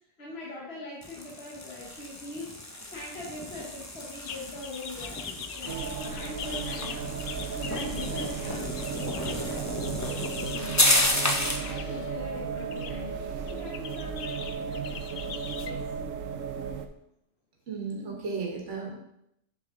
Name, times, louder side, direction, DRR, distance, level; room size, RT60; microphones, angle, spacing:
voice 1, 0.2-2.5 2.9-7.1 7.5-10.8 11.4-15.8, left 2 dB, 55° left, -4 dB, 1.4 m, -42 dB
sound 1, 1.0-11.7, left 1 dB, 15° left, 0.6 m, -31 dB
sound 2, 4.2-10.9 11.5-12.2 12.6-12.9 13.5-15.7, left 7 dB, 70° left, 0.4 m, -42 dB
sound 3, 5.7-16.9, right 6 dB, 80° right, 1.0 m, -35 dB
voice 2, 17.7-18.9, right 4 dB, 65° right, -1 dB, 1.7 m, -34 dB
6.6 x 6.1 x 3.7 m, 0.77 s
omnidirectional pair, 1.3 m